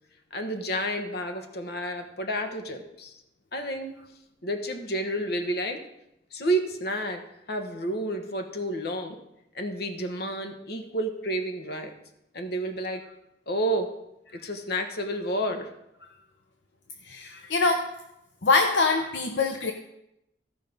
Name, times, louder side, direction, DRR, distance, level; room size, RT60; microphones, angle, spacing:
voice 1, 0.3-3.2 3.5-3.9 4.4-5.8 6.3-7.2 7.5-9.2 9.5-11.9 12.3-13.0 13.5-13.9 14.4-15.7, right 1 dB, 60° left, 5 dB, 1.2 m, -30 dB
voice 2, 17.1-17.9 18.4-19.7, left 3 dB, 80° left, 4 dB, 0.8 m, -24 dB
14.5 x 5.3 x 5.3 m, 0.84 s
head